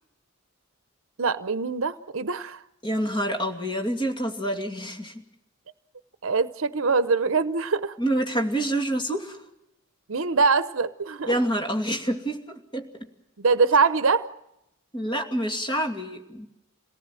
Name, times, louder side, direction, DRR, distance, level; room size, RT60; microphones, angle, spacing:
voice 1, 1.2-2.6 6.2-7.9 10.1-11.3 13.4-14.3, right 4 dB, 70° right, 0.8 m, -23 dB
voice 2, 2.8-5.2 8.0-9.4 11.3-12.9 14.9-16.5, right 1 dB, 25° left, 2.6 m, -27 dB
27.5 x 18.5 x 7.6 m
head